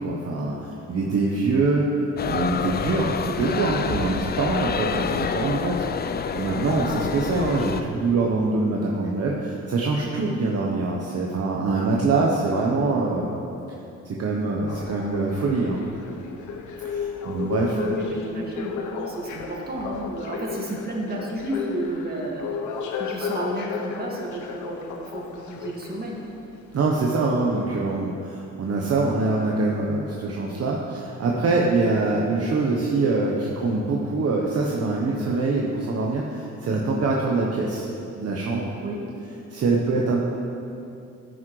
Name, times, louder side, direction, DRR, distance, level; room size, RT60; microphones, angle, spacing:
voice 1, 0.0-5.8 6.3-13.4 14.0-15.8 16.8-17.8 26.7-37.9 38.1-38.7 39.5-40.2, right 3 dB, 55° right, -2 dB, 1.0 m, -24 dB
sound 1, 2.2-7.8, left 6 dB, 35° left, 0.4 m, -28 dB
sound 2, 14.7-26.3 26.9-27.0, left 5 dB, 75° left, 0.9 m, -33 dB
voice 2, 17.7-22.5 23.0-26.2 38.8-39.0, right 1 dB, 30° right, -3 dB, 2.0 m, -32 dB
13.5 x 6.2 x 3.2 m, 2.7 s
cardioid pair, 90°, 30 cm